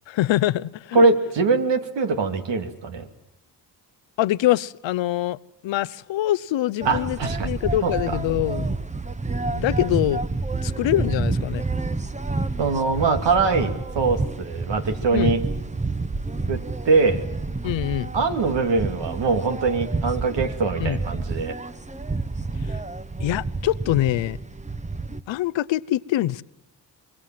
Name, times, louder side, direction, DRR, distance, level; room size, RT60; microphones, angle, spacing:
voice 1, 0.1-1.1 4.2-5.4 5.6-8.7 9.5-10.2 10.6-11.6 15.1-15.3 17.6-18.1 20.8-21.0 22.7-22.8 23.2-24.4 25.3-26.4, left 14 dB, 80° left, 18 dB, 0.8 m, -24 dB
voice 2, 0.9-3.1 6.9-7.5 7.8-7.9 12.6-15.4 16.5-17.2 18.1-21.5, right 4 dB, 70° right, 6 dB, 2.7 m, -22 dB
sound 1, 6.8-25.2, right 3 dB, 15° right, 1.1 m, -29 dB
25.0 x 22.0 x 7.6 m, 0.94 s
cardioid pair, 75°, 44 cm